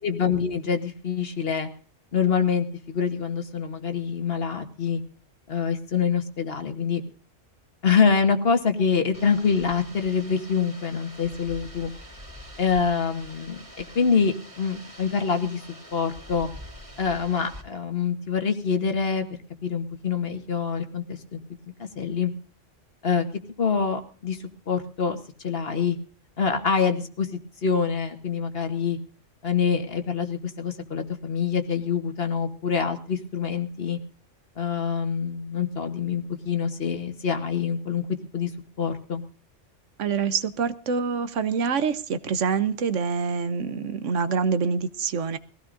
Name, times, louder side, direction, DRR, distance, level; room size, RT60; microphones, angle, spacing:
voice 1, 0.0-1.7 2.1-5.0 5.5-7.0 7.8-11.9 12.6-13.6 13.9-15.6 15.9-16.5 17.0-19.3 19.6-21.4 21.8-22.3 23.0-23.2 23.6-24.4 24.7-25.2 25.4-26.0 26.4-27.3 27.6-29.0 29.4-34.0 34.6-38.0 38.3-38.5 38.8-39.2, left 6 dB, 50° left, 7 dB, 1.5 m, -25 dB
sound 1, 9.1-17.6, equal, 25° right, 2.8 m, -45 dB
voice 2, 40.0-45.4, right 5 dB, 75° right, 12 dB, 1.2 m, -26 dB
21.5 x 16.0 x 2.6 m, 0.40 s
omnidirectional pair, 1.3 m